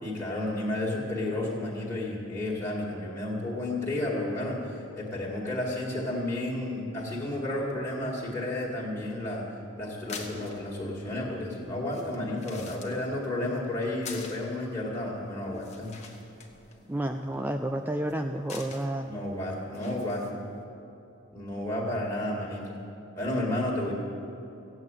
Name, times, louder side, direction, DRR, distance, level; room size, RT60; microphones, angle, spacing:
voice 1, 0.0-9.5 9.8-16.0 19.1-20.3 21.3-22.7 23.2-23.9, left 1 dB, 15° left, -5 dB, 2.0 m, -32 dB
sound 1, 9.9-20.6, left 4 dB, 30° left, 1.3 m, -48 dB
voice 2, 16.9-19.1, right 1 dB, 10° right, 5 dB, 0.3 m, -30 dB
15.5 x 8.0 x 9.0 m, 2.9 s
head